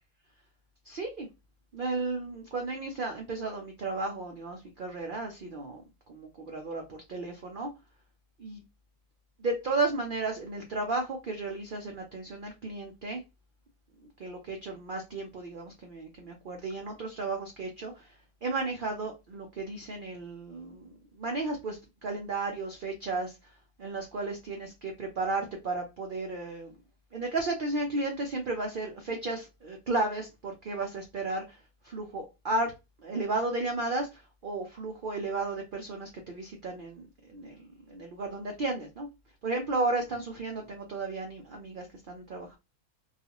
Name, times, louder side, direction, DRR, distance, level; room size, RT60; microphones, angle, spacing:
voice 1, 0.9-1.3 1.7-5.8 6.1-7.7 8.4-8.6 9.4-13.2 14.2-18.2 18.4-23.5 23.8-26.7 27.1-32.7 33.0-39.1 39.4-42.6, right 3 dB, 85° right, 0.4 m, -34 dB
2.4 x 2.3 x 2.8 m
omnidirectional pair, 1.5 m